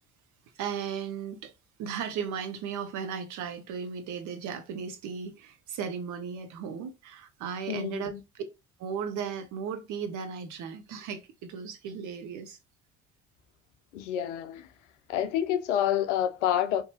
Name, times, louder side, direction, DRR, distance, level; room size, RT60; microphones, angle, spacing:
voice 1, 0.6-1.5 1.8-8.4 8.8-12.6, right 7 dB, 55° right, 0.7 m, -36 dB
voice 2, 7.7-8.2 13.9-14.7 15.1-16.8, left 10 dB, 80° left, 0.5 m, -28 dB
2.7 x 2.2 x 2.7 m
hypercardioid pair, 55°, 35 cm